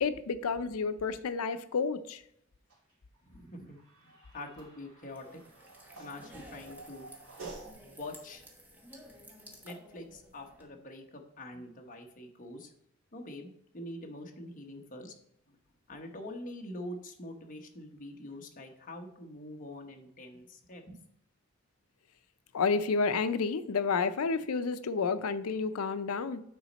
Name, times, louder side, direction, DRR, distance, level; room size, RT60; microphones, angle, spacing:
voice 1, 0.0-2.2 22.5-26.4, left 5 dB, 80° left, 12 dB, 0.5 m, -30 dB
sound 1, 2.7-7.7, right 3 dB, 75° right, 2.7 m, -50 dB
voice 2, 3.2-5.4 6.0-7.1 7.9-8.4 9.6-12.7 13.1-15.1 15.5-15.6 15.9-21.0, left 1 dB, 40° left, 2 dB, 1.0 m, -45 dB
sound 2, 5.0-10.6, equal, 10° right, 1.0 m, -54 dB
9.3 x 4.1 x 4.1 m, 0.73 s
head